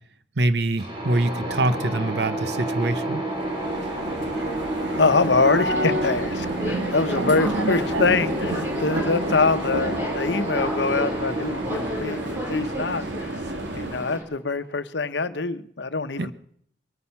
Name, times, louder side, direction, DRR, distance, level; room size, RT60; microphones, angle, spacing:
voice 1, 0.4-3.2 16.2-16.3, right 2 dB, 70° right, 13 dB, 0.8 m, -24 dB
sound 1, 0.8-14.4, right 1 dB, 30° right, 4.5 m, -30 dB
sound 2, 3.3-14.2, right 1 dB, 90° right, 1.5 m, -30 dB
Subway metro underground, 4.7-14.2, equal, 15° right, 3.5 m, -35 dB
voice 2, 4.9-13.1 13.7-16.3, left 4 dB, 80° left, 11 dB, 0.9 m, -24 dB
22.0 x 9.8 x 5.9 m, 0.64 s
head